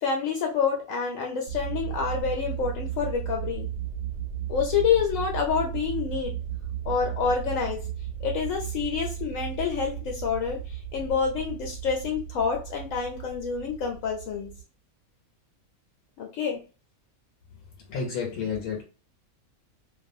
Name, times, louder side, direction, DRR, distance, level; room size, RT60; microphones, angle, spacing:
voice 1, 0.0-3.7 4.5-6.3 6.8-7.8 8.2-14.5 16.2-16.6, left 6 dB, 70° left, 1 dB, 0.9 m, -28 dB
sound 1, 1.5-14.6, right 10 dB, 65° right, 0.7 m, -35 dB
voice 2, 17.9-18.8, left 5 dB, 90° left, 0 dB, 1.1 m, -30 dB
2.4 x 2.3 x 2.6 m, 0.35 s
omnidirectional pair, 1.5 m